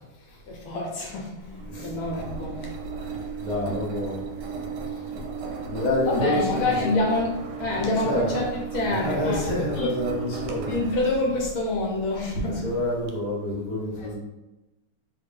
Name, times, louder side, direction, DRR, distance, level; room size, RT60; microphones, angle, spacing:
voice 1, 0.3-2.7 6.0-7.3 7.6-9.9 10.7-12.8 14.0-14.1, left 2 dB, 75° left, -1 dB, 1.5 m, -27 dB
Engine, 1.4-13.1, right 4 dB, 75° right, 1.3 m, -35 dB
voice 2, 2.9-4.2 5.7-6.9 7.7-8.3 8.8-10.7 12.4-14.1, left 1 dB, 55° left, -6 dB, 0.4 m, -28 dB
3.3 x 2.5 x 3.4 m, 1.0 s
omnidirectional pair, 2.3 m